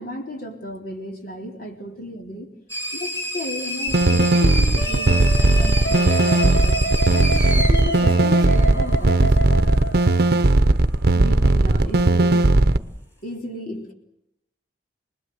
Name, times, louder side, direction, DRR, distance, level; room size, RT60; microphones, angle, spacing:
voice 1, 0.0-2.5 2.9-9.7 11.1-12.5 13.2-13.9, left 1 dB, 55° left, 2 dB, 3.7 m, -34 dB
sound 1, 2.7-9.1, equal, 15° left, 6.8 m, -29 dB
sound 2, 3.9-12.8, right 2 dB, 60° right, 0.9 m, -17 dB
Wind instrument woodwind instrument, 4.8-10.3, right 1 dB, 80° left, 2.4 m, -29 dB
27.0 x 20.5 x 7.8 m, 0.84 s
head